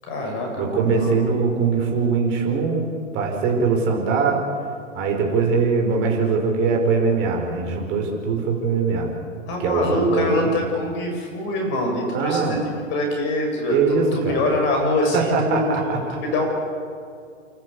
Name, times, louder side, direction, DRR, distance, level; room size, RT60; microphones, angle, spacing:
voice 1, 0.0-1.2 9.5-16.5, left 1 dB, 30° left, 2 dB, 7.2 m, -24 dB
voice 2, 0.6-2.9 3.1-4.4 4.9-9.1 9.6-10.5 12.1-12.6 13.7-14.6 15.1-16.2, right 4 dB, 30° right, 1 dB, 5.2 m, -21 dB
29.5 x 13.5 x 8.6 m, 2.3 s
figure-of-eight pair, 125°, 38 cm